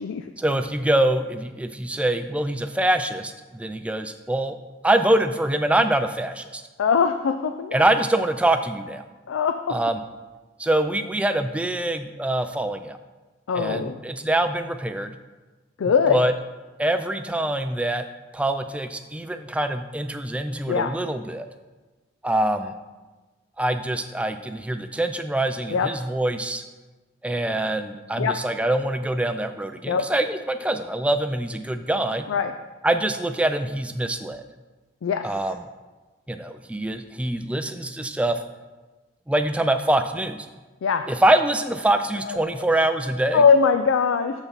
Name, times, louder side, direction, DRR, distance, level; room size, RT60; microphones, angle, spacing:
voice 1, 0.4-4.6 4.8-6.6 7.7-9.0 9.7-10.0 10.6-13.0 13.5-15.1 16.1-16.3 16.8-18.0 18.3-21.5 22.2-22.7 23.6-26.6 27.2-32.3 32.8-34.4 35.2-35.6 36.3-38.4 39.3-40.5 41.1-43.4, right 1 dB, 5° right, 8 dB, 0.3 m, -24 dB
voice 2, 6.8-7.8 9.3-9.5 13.5-13.9 15.8-16.2 20.7-20.9 25.7-25.9 28.2-28.3 29.9-30.1 32.3-32.5 35.0-35.3 40.8-41.0 42.3-42.7 43.3-44.3, left 6 dB, 85° left, 8 dB, 0.4 m, -21 dB
7.2 x 6.9 x 4.1 m, 1.2 s
head